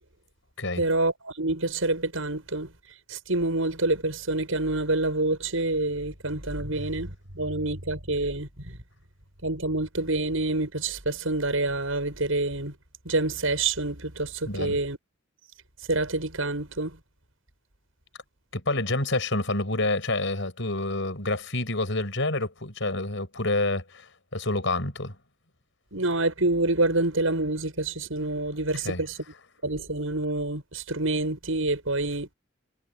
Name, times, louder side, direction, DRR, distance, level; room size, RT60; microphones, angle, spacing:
voice 1, 0.8-2.7 3.1-8.8 9.4-12.7 13.0-15.0 15.9-17.0 25.9-29.2 29.6-32.3, right 2 dB, 75° right, 7.4 m, -27 dB
voice 2, 14.5-14.8 18.5-24.1 24.3-25.2 28.8-29.0, left 2 dB, 60° left, 7.3 m, -28 dB
head